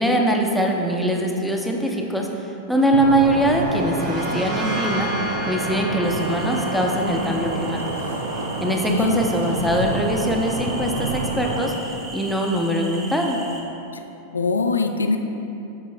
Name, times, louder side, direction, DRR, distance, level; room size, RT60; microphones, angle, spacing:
voice 1, 0.0-2.3 2.7-5.1 5.4-7.8 8.6-11.7 12.1-13.4, right 1 dB, ahead, 0 dB, 0.7 m, -22 dB
sound 1, 2.9-11.7, right 2 dB, 65° right, 0.6 m, -28 dB
sound 2, 3.5-11.0, equal, 45° right, 0.9 m, -34 dB
sound 3, 6.0-13.6, right 2 dB, 25° right, 1.1 m, -38 dB
voice 2, 8.6-9.2 14.3-15.2, left 4 dB, 75° left, 6 dB, 0.3 m, -22 dB
12.5 x 4.6 x 2.2 m, 2.9 s
figure-of-eight pair, 90°, 0 cm